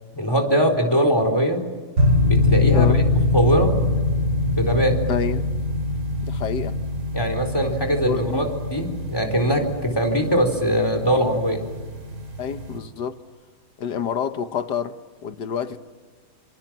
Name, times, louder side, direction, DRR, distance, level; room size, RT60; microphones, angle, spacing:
voice 1, 0.1-1.6 2.2-2.9 3.3-3.8 4.4-5.0 7.1-11.6, equal, 10° left, 3.9 m, -21 dB
sound 1, 2.0-12.8, left 2 dB, 50° right, 3.5 m, -24 dB
voice 2, 2.7-3.0 5.1-5.4 6.2-6.8 8.0-8.5 12.4-13.2 13.8-15.8, left 7 dB, 60° left, 1.5 m, -27 dB
27.0 x 27.0 x 7.5 m
omnidirectional pair, 2.3 m